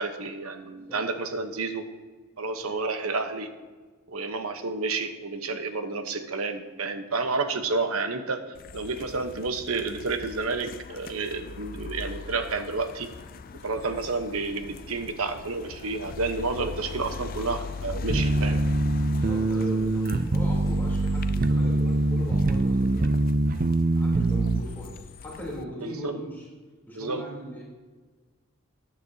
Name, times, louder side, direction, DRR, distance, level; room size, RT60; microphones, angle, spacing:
voice 1, 0.0-1.9 2.4-3.5 4.1-8.4 8.7-13.1 13.6-18.6 25.8-26.2 26.9-27.2, right 3 dB, 80° right, 8 dB, 1.0 m, -30 dB
voice 2, 7.2-7.7 19.0-23.1 23.9-26.5 26.9-27.6, equal, 10° left, -5 dB, 3.2 m, -40 dB
sound 1, 8.5-25.6, left 4 dB, 40° left, 0.4 m, -41 dB
sound 2, 18.1-24.6, right 2 dB, 40° right, 0.4 m, -24 dB
14.5 x 9.7 x 2.8 m, 1.4 s
head